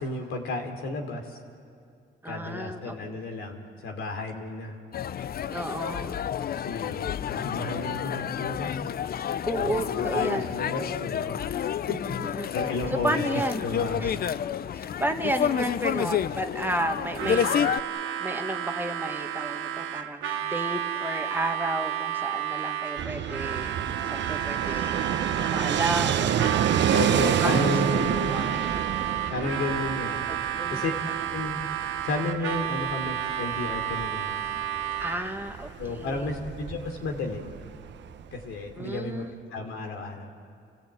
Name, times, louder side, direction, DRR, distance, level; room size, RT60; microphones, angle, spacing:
voice 1, 0.0-1.4 2.2-4.8 6.0-6.2 6.6-8.8 9.6-11.4 11.9-12.0 12.5-13.1 13.6-14.1 26.9-28.5 29.3-30.1 30.7-30.9 31.3-31.6 32.0-34.4 35.8-37.4 38.3-39.3 39.5-40.3, left 3 dB, 85° left, 3 dB, 3.1 m, -32 dB
voice 2, 2.2-3.0 5.5-6.2 9.4-10.5 12.2-12.5 12.9-13.6 14.0-14.1 14.7-17.6 18.2-23.8 24.0-25.0 25.3-26.6 27.1-27.7 28.2-28.8 30.3-30.8 35.0-36.3 38.8-39.3, right 1 dB, 10° right, 4 dB, 1.7 m, -32 dB
sound 1, 4.9-17.8, left 9 dB, 50° left, 0.6 m, -29 dB
Harmonica, 17.1-35.4, right 10 dB, 85° right, 1.2 m, -31 dB
Fixed-wing aircraft airplane, 23.0-38.7, right 9 dB, 65° right, 0.9 m, -29 dB
29.5 x 16.0 x 9.0 m, 2.3 s
cardioid pair, 90°, 20 cm